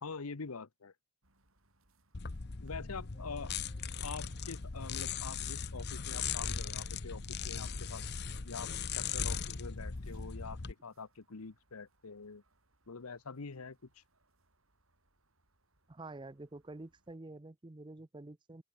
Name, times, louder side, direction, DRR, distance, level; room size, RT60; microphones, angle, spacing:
voice 1, 0.0-0.9 2.6-3.5 4.0-8.0 8.4-12.4 12.9-14.0, left 4 dB, 80° left, 1.0 m, -45 dB
sound 1, 1.2-17.2, right 2 dB, 65° right, 7.2 m, -75 dB
sound 2, 2.1-10.7, left 6 dB, 50° left, 0.9 m, -38 dB
sound 3, 3.1-5.7, left 1 dB, 20° left, 4.6 m, -67 dB
voice 2, 15.9-18.6, right 2 dB, 20° right, 0.6 m, -48 dB
open air
head